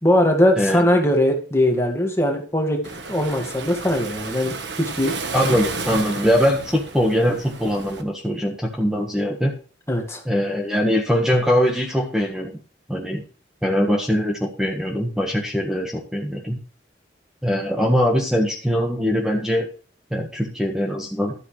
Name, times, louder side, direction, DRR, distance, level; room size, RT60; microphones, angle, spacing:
voice 1, 0.0-5.1 9.9-10.2, left 1 dB, 15° left, 2 dB, 2.0 m, -20 dB
Waves surf, 2.8-8.0, right 3 dB, 75° right, 1.4 m, -32 dB
voice 2, 5.3-9.5 10.2-12.5 12.9-13.2 13.6-16.6 17.4-19.7 20.1-21.3, equal, 5° right, 0 dB, 1.5 m, -22 dB
12.5 x 9.6 x 3.3 m, 0.39 s
head